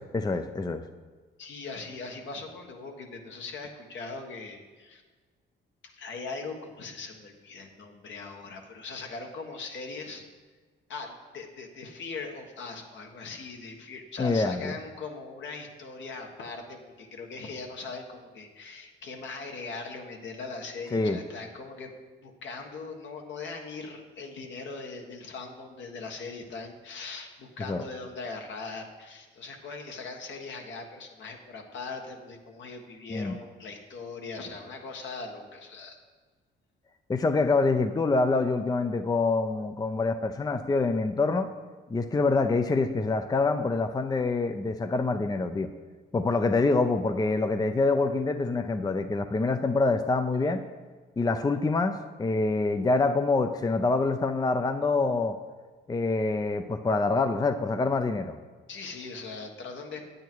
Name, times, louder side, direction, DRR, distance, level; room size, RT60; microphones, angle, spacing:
voice 1, 0.1-0.8 14.2-14.7 20.9-21.2 27.7-27.8 33.1-33.3 37.1-41.5 41.9-45.7 46.1-50.6 51.2-55.4 55.9-58.4, left 3 dB, 20° left, 9 dB, 0.5 m, -26 dB
voice 2, 1.4-5.0 5.8-10.2 10.9-21.9 22.2-36.0 58.7-60.0, left 4 dB, 70° left, 3 dB, 1.5 m, -40 dB
9.3 x 8.7 x 4.6 m, 1.4 s
cardioid pair, 90°, 20 cm